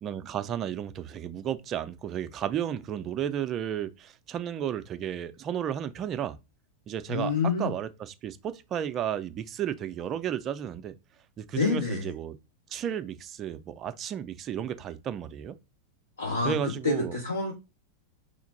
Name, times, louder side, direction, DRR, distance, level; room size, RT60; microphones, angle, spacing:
voice 1, 0.0-6.4 6.9-10.9 11.4-12.4 12.7-15.6 16.4-17.2, right 9 dB, 30° right, 0.4 m, -33 dB
voice 2, 7.1-7.7 11.5-12.0 16.2-17.5, left 4 dB, 70° left, 0.7 m, -28 dB
3.1 x 2.5 x 4.0 m
figure-of-eight pair, 90°, 0 cm